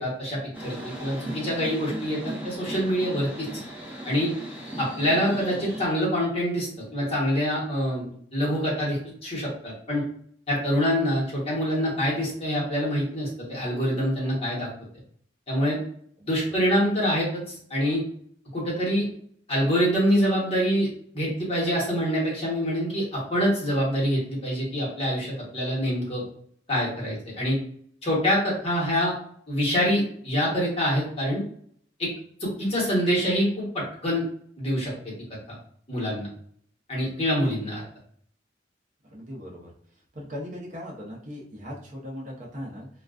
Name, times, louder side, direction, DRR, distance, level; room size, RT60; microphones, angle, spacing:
voice 1, 0.0-2.2 2.4-3.5 4.0-4.3 4.8-10.0 10.5-14.7 15.5-15.8 16.3-18.0 18.5-19.1 19.5-20.9 21.1-26.2 26.7-27.6 28.0-29.1 29.5-31.4 32.0-32.1 32.4-34.2 34.6-35.1 35.5-35.6 35.9-36.3 36.9-37.8, equal, 35° left, -5 dB, 1.0 m, -25 dB
sound 1, 0.5-5.9, right 1 dB, 10° right, 0.8 m, -37 dB
voice 2, 16.2-16.7 39.0-39.7 40.1-42.9, equal, 40° right, -3 dB, 0.7 m, -39 dB
2.3 x 2.3 x 2.3 m, 0.62 s
head